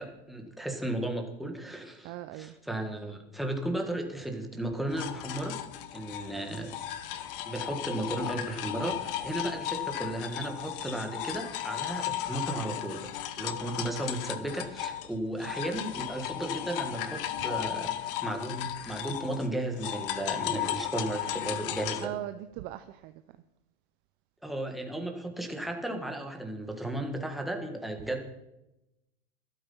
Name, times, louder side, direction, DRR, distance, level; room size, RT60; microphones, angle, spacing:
voice 1, 0.0-5.5 5.9-6.7 7.1-22.1 24.4-28.3, right 1 dB, ahead, 3 dB, 1.5 m, -35 dB
voice 2, 2.0-2.6 15.7-15.9 22.0-23.1, right 14 dB, 30° right, 11 dB, 0.5 m, -39 dB
sound 1, 4.9-15.1 15.4-22.1, left 12 dB, 60° left, 1.2 m, -35 dB
13.5 x 12.5 x 5.5 m, 0.92 s
supercardioid pair, 150°, 31 cm